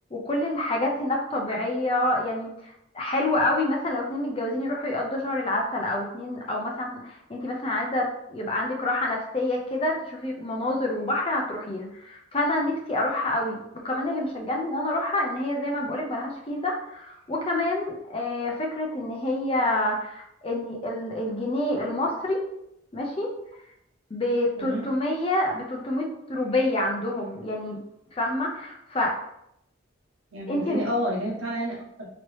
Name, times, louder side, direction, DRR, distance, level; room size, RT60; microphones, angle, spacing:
voice 1, 0.1-2.5 2.9-13.6 13.8-22.4 22.9-23.3 24.1-27.8 28.1-29.2 30.5-30.8, left 1 dB, 30° left, 0 dB, 0.5 m, -27 dB
voice 2, 30.3-32.1, equal, 85° right, -4 dB, 1.0 m, -30 dB
3.0 x 2.8 x 3.1 m, 0.78 s
head